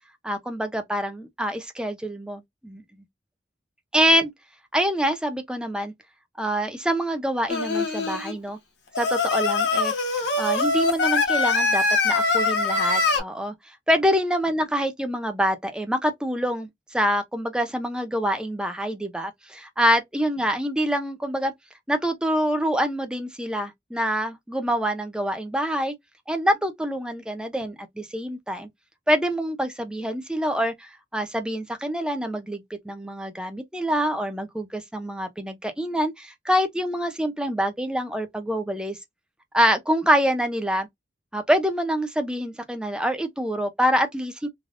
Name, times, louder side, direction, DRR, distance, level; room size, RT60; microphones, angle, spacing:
voice 1, 0.2-2.8 3.9-4.3 4.7-5.9 6.4-8.6 9.0-9.9 10.4-13.5 13.9-21.5 21.9-25.9 26.3-28.7 29.1-39.0 39.5-40.9 41.3-44.5, equal, 5° right, 0.5 m, -25 dB
Singing, 7.5-8.3 8.9-13.2, left 3 dB, 70° left, 1.0 m, -23 dB
3.3 x 2.2 x 2.5 m
head